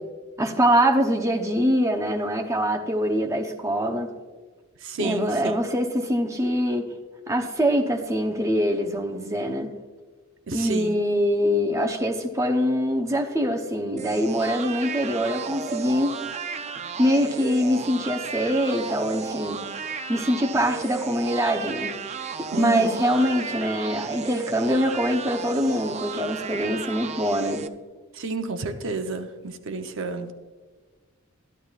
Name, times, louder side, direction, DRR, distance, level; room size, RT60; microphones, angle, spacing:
voice 1, 0.4-4.1 5.0-6.9 7.3-9.7 10.5-16.1 17.0-19.6 20.1-22.0 22.6-27.7, equal, 15° right, 3 dB, 0.8 m, -24 dB
voice 2, 4.8-5.6 10.5-11.0 22.5-23.0 28.1-30.3, right 3 dB, 65° right, 7 dB, 0.7 m, -30 dB
sound 1, 14.0-27.7, right 6 dB, 35° right, 0.4 m, -34 dB
14.0 x 11.5 x 2.4 m, 1.4 s
head